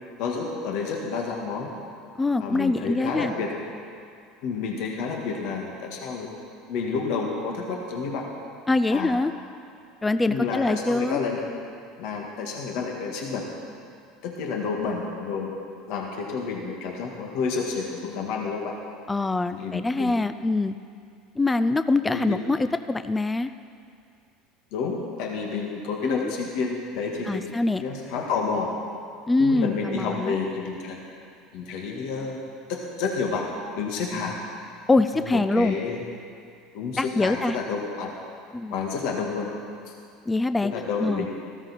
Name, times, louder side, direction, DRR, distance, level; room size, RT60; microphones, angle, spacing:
voice 1, 0.2-1.7 2.4-3.5 4.4-6.3 6.7-8.2 8.9-9.2 10.3-11.4 12.0-13.4 14.2-15.5 15.9-18.7 19.6-20.2 22.1-22.4 24.7-28.7 29.4-31.0 31.5-32.4 32.7-33.4 33.8-34.4 35.1-36.0 36.7-38.1 38.7-39.5 39.9-40.0 40.6-41.3, left 5 dB, 65° left, 0 dB, 1.7 m, -30 dB
voice 2, 2.2-3.3 8.7-9.3 10.0-11.2 19.1-20.8 21.4-23.5 26.0-26.3 27.2-27.8 29.3-30.4 34.9-35.8 37.0-37.6 38.5-38.8 40.3-40.7 41.0-41.3, left 2 dB, 15° left, 11 dB, 0.4 m, -24 dB
14.5 x 13.0 x 4.2 m, 2.4 s
hypercardioid pair, 85°, 0 cm